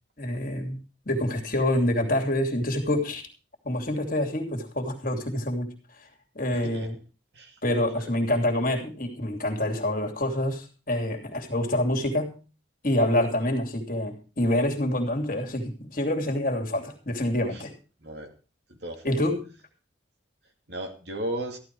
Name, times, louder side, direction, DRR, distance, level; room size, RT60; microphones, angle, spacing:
voice 1, 0.2-0.8 1.1-3.2 3.6-5.7 6.3-7.0 7.6-12.4 12.8-17.7 19.0-19.4, left 1 dB, 45° left, 3 dB, 2.8 m, -26 dB
voice 2, 6.5-6.9 7.3-7.6 8.0-8.1 17.5-17.6 18.0-18.3 18.7-19.2 20.7-21.6, right 1 dB, 60° right, 4 dB, 2.6 m, -35 dB
14.0 x 12.0 x 4.7 m, 0.35 s
head